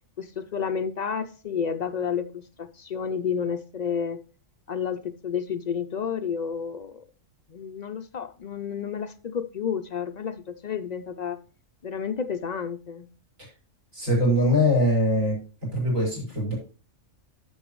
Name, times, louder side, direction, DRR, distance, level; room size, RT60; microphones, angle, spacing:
voice 1, 0.2-4.2 4.7-7.0 7.5-11.4 11.8-13.1, left 7 dB, 55° left, 0.4 m, -31 dB
voice 2, 13.9-15.4 15.7-16.6, left 1 dB, 75° right, 5.4 m, -22 dB
11.0 x 7.3 x 3.1 m
omnidirectional pair, 1.4 m